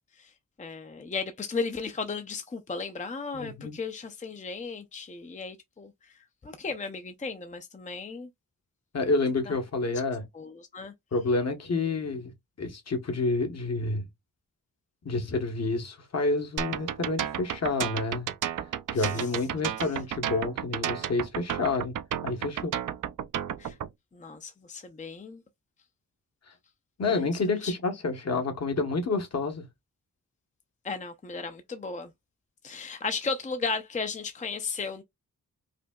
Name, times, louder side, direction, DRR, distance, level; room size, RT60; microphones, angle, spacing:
voice 1, 0.6-8.3 10.3-10.9 18.9-19.3 23.6-23.8 24.1-25.4 27.1-27.2 27.6-27.7 30.8-32.1 32.6-35.0, left 4 dB, 25° left, 0.5 m, -35 dB
voice 2, 3.3-3.8 8.9-10.2 11.1-14.0 15.0-18.3 18.6-22.0 22.2-22.7 27.0-29.7, left 3 dB, 50° left, 1.2 m, -29 dB
sound 1, 16.6-23.9, right 9 dB, 70° right, 0.5 m, -32 dB
4.9 x 2.7 x 2.3 m
wide cardioid pair, 115°, 32 cm